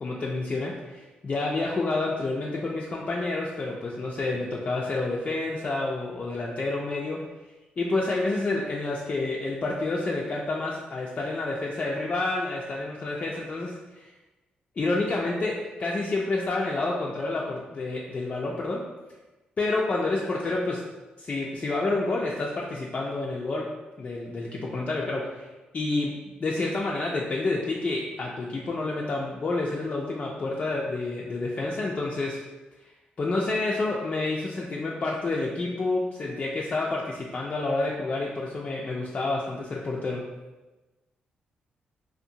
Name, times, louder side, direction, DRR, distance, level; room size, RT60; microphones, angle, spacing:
voice 1, 0.0-7.2 7.8-14.1 14.8-18.9 19.6-20.9 21.2-25.5 25.7-32.4 33.2-40.3, left 2 dB, 40° left, -3 dB, 0.3 m, -29 dB
2.6 x 2.0 x 2.6 m, 1.1 s
cardioid pair, 65°, 3 cm